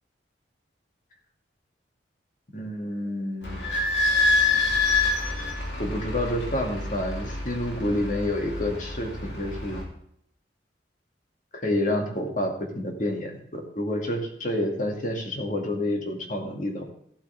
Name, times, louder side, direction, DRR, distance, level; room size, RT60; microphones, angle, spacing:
voice 1, 2.5-3.6 5.8-9.8 11.5-16.9, left 1 dB, 45° left, 2 dB, 2.2 m, -29 dB
Idling / Squeak, 3.4-9.8, left 3 dB, 65° left, 3.1 m, -27 dB
14.5 x 8.3 x 3.4 m, 0.69 s
head